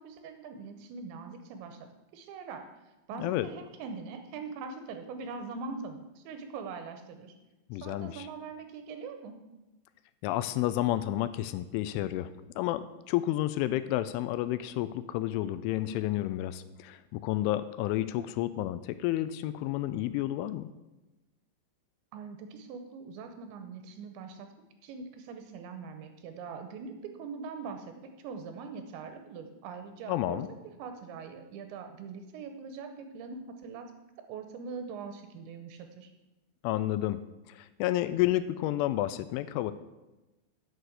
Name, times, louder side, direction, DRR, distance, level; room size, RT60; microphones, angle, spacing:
voice 1, 0.0-2.6 3.1-7.4 7.8-9.4 22.1-24.5 24.8-30.4 30.8-33.9 34.3-36.1, right 5 dB, 75° right, 7 dB, 2.9 m, -42 dB
voice 2, 3.1-3.5 7.7-8.3 10.2-20.7 30.1-30.5 36.6-37.2 37.5-39.7, left 14 dB, 85° left, 13 dB, 2.9 m, -30 dB
9.6 x 6.5 x 7.8 m, 1.0 s
omnidirectional pair, 5.7 m